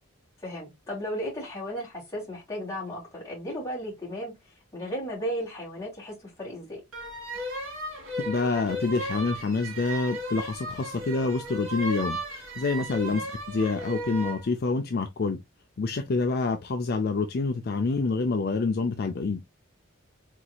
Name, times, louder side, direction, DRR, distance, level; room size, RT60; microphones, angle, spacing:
voice 1, 0.4-6.8 13.1-13.2, equal, 15° left, 2.8 m, -35 dB
sound 1, 6.9-14.4, right 1 dB, 65° right, 2.1 m, -35 dB
voice 2, 8.3-15.4 15.8-19.4, left 3 dB, 45° left, 0.4 m, -27 dB
4.6 x 4.0 x 2.3 m
head